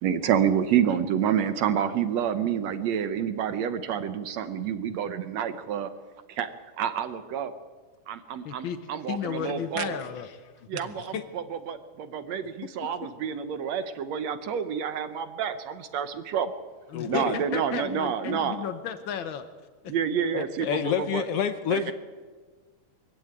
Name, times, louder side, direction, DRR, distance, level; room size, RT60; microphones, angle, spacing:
voice 1, 0.0-5.9 6.3-7.5 8.1-10.0 10.7-16.6 17.0-18.6 19.9-21.2 21.7-21.9, right 8 dB, 70° right, 11 dB, 1.9 m, -28 dB
voice 2, 8.4-8.8 9.1-10.3 10.7-11.0 16.9-19.5 19.8-19.9, left 8 dB, 90° left, 10 dB, 1.0 m, -34 dB
voice 3, 16.9-17.4 20.3-21.9, left 8 dB, 65° left, 10 dB, 1.5 m, -28 dB
23.5 x 15.5 x 8.9 m, 1.4 s
omnidirectional pair, 3.6 m